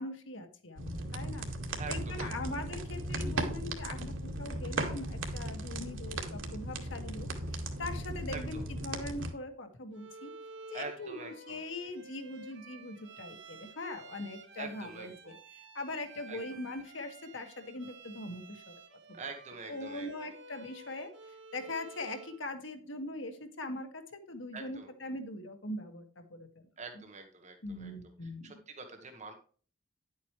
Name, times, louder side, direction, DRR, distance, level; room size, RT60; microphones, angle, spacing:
voice 1, 0.0-1.5 1.9-10.3 10.7-15.4 15.8-19.2 19.7-21.1 21.5-26.6 27.6-28.5, left 2 dB, 75° left, 5 dB, 1.9 m, -41 dB
sound 1, 0.8-9.3, right 1 dB, 85° right, 1.9 m, -37 dB
voice 2, 1.8-2.6 8.3-8.6 10.7-11.6 14.6-15.4 16.3-16.4 19.1-20.3 24.5-24.9 26.8-27.9 28.2-29.3, right 4 dB, 35° right, 5 dB, 1.2 m, -45 dB
Bowed string instrument, 9.9-22.5, right 3 dB, 60° right, 1.6 m, -51 dB
10.5 x 8.4 x 3.2 m, 0.43 s
head